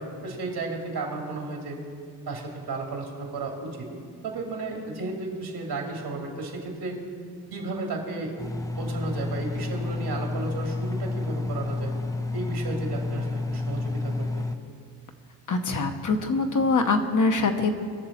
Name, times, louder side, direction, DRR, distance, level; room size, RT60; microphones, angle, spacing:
voice 1, 0.0-1.8 2.3-3.9 4.2-7.0 7.5-8.4 8.8-11.9 12.3-14.3, right 3 dB, 75° right, 0 dB, 2.5 m, -33 dB
Engine, 8.4-14.6, left 2 dB, 10° left, 0.4 m, -30 dB
voice 2, 15.5-17.7, left 3 dB, 50° left, 6 dB, 1.0 m, -23 dB
20.5 x 6.9 x 4.2 m, 2.2 s
cardioid pair, 100°, 40 cm